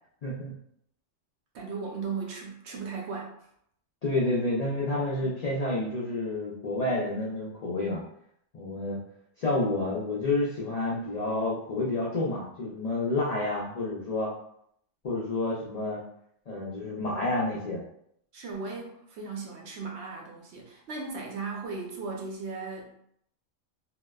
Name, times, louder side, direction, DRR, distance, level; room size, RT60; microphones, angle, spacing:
voice 1, 0.2-0.5 4.0-8.0 8.5-9.0 9.4-14.3 15.0-16.0 16.5-17.8, left 2 dB, 85° left, -5 dB, 0.3 m, -29 dB
voice 2, 1.5-3.5 18.3-23.0, right 4 dB, 65° right, -1 dB, 0.8 m, -37 dB
2.8 x 2.0 x 2.2 m, 0.72 s
omnidirectional pair, 1.3 m